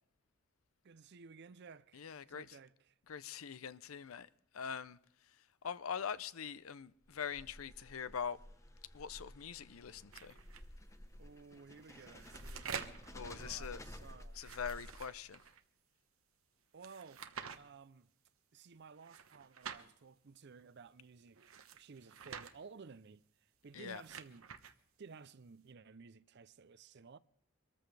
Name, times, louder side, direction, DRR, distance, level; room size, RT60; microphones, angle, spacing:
voice 1, 0.8-3.0 11.2-13.0 13.3-14.4 16.7-17.3 17.6-18.1 18.5-24.5 25.0-27.2, right 5 dB, 55° right, 0.5 m, -56 dB
voice 2, 1.9-2.6 3.1-4.3 4.5-5.0 5.6-8.4 8.9-10.4 13.1-13.8 14.3-15.4 23.7-24.0, left 7 dB, 80° left, 0.6 m, -43 dB
sound 1, 7.0-15.4, left 1 dB, 15° left, 0.9 m, -53 dB
sound 2, 10.1-10.6 11.8-13.1 14.3-15.6 16.8-17.6 19.0-19.9 21.4-22.5 23.7-24.7, right 7 dB, 75° right, 1.0 m, -48 dB
24.5 x 14.0 x 3.4 m
head